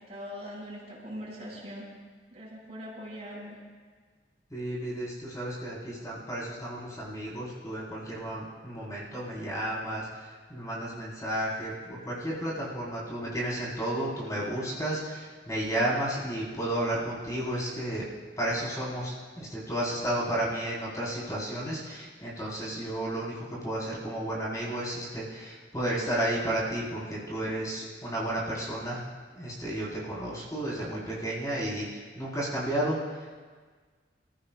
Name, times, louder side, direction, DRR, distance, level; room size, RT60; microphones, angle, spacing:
voice 1, 0.0-1.9 2.3-3.6, equal, 40° right, -5 dB, 5.4 m, -41 dB
voice 2, 4.5-18.1 18.4-29.0 29.4-33.3, right 1 dB, 20° left, -7 dB, 3.6 m, -32 dB
27.5 x 14.5 x 2.2 m, 1.5 s
head